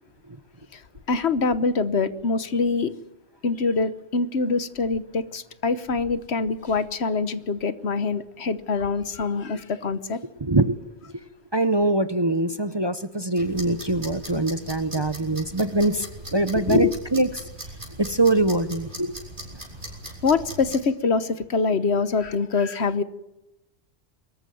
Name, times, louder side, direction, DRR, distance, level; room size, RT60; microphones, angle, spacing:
voice 1, 1.1-2.9 3.4-10.2 16.6-16.9 20.2-23.0, left 4 dB, 65° left, 14 dB, 1.4 m, -24 dB
voice 2, 10.4-10.8 11.1-11.2 11.5-17.4 18.0-19.1, right 2 dB, 25° right, 12 dB, 0.8 m, -23 dB
sound 1, 13.4-20.8, right 1 dB, 45° right, 6.3 m, -40 dB
24.0 x 14.0 x 9.2 m, 0.94 s
omnidirectional pair, 1.2 m